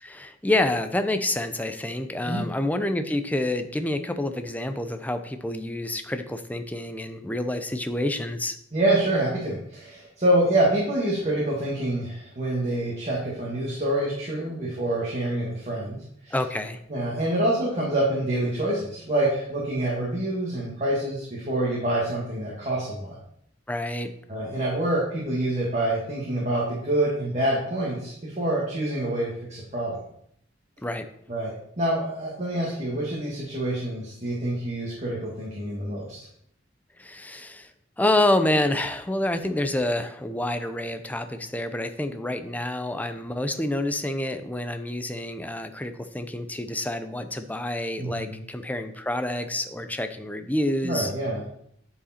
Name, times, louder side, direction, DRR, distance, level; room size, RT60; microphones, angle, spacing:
voice 1, 0.0-8.6 16.3-16.8 23.7-24.1 30.8-31.1 37.0-37.7 38.0-51.1, left 1 dB, 10° left, 8 dB, 0.5 m, -28 dB
voice 2, 8.7-16.0 16.2-16.3 16.9-23.2 24.3-30.0 31.3-36.2 48.0-48.4 50.8-51.4, right 1 dB, 40° right, -5 dB, 2.0 m, -26 dB
9.9 x 4.9 x 4.4 m, 0.70 s
head